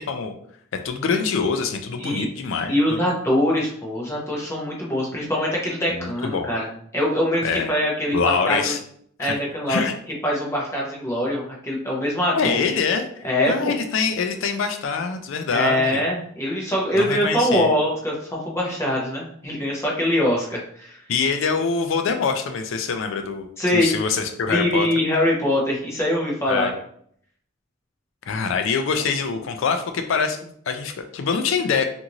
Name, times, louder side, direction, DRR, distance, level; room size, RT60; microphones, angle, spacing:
voice 1, 0.8-3.0 6.0-6.5 7.4-7.7 8.1-8.8 9.2-9.4 9.7-9.9 12.3-16.0 16.9-17.7 21.1-23.5 23.7-24.9 26.5-26.7 28.3-31.8, left 5 dB, 70° left, 7 dB, 0.4 m, -24 dB
voice 2, 2.7-6.7 6.9-8.7 9.2-9.8 10.2-12.6 13.2-13.7 15.5-21.0 23.6-23.9 24.5-26.7, left 1 dB, 15° left, -4 dB, 0.7 m, -23 dB
2.6 x 2.4 x 2.9 m, 0.64 s
head